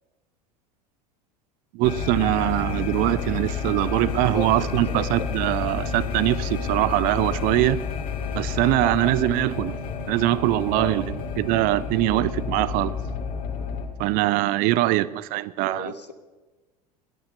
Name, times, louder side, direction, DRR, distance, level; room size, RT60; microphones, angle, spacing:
voice 1, 1.7-7.8 8.3-9.7 10.1-12.9 14.0-15.9, right 16 dB, 45° right, 19 dB, 0.5 m, -23 dB
sound 1, 1.8-13.9, left 5 dB, 45° left, 2.1 m, -30 dB
voice 2, 4.1-5.3 8.8-9.1 9.4-9.5 10.7-11.1 15.6-16.1, left 3 dB, 85° left, 10 dB, 1.0 m, -35 dB
15.5 x 11.5 x 5.4 m, 1.2 s
figure-of-eight pair, 80°, 20 cm